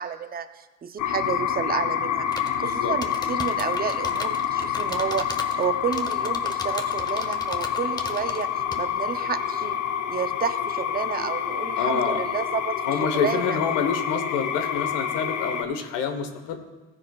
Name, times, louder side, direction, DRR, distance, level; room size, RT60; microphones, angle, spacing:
voice 1, 0.0-2.3 2.6-8.5 8.8-9.8 10.1-13.6, right 7 dB, 30° right, 10 dB, 0.6 m, -30 dB
sound 1, 1.0-15.6, left 9 dB, 65° left, 0.8 m, -28 dB
sound 2, 2.3-2.6 3.0-5.6 5.9-8.4 8.7-8.8, left 2 dB, 15° left, 0.9 m, -36 dB
voice 2, 2.6-2.9 11.7-12.2 12.8-16.6, left 6 dB, 85° left, 7 dB, 1.1 m, -27 dB
14.5 x 9.8 x 2.3 m, 1.2 s
supercardioid pair, 90°, 31 cm